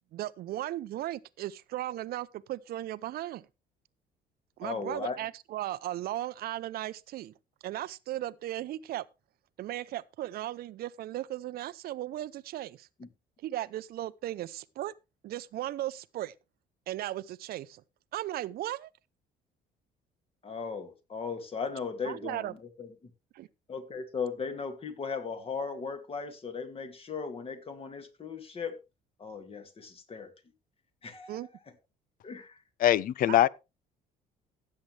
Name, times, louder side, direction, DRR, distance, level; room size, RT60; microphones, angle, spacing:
voice 1, 0.1-3.5 4.6-7.3 7.6-9.0 9.6-12.9 13.4-14.9 15.2-16.3 16.9-17.8 18.1-18.9 22.0-22.5 23.3-23.5 31.3-31.5 33.3-33.4, right 14 dB, 65° right, 0.6 m, -36 dB
voice 2, 4.6-5.2 13.0-13.1 20.4-22.9 23.7-28.7 29.2-30.3 31.0-31.4 32.2-32.6, left 5 dB, 35° left, 2.2 m, -37 dB
voice 3, 32.8-33.5, left 12 dB, 55° left, 0.5 m, -22 dB
16.0 x 7.7 x 3.3 m
cardioid pair, 110°, 17 cm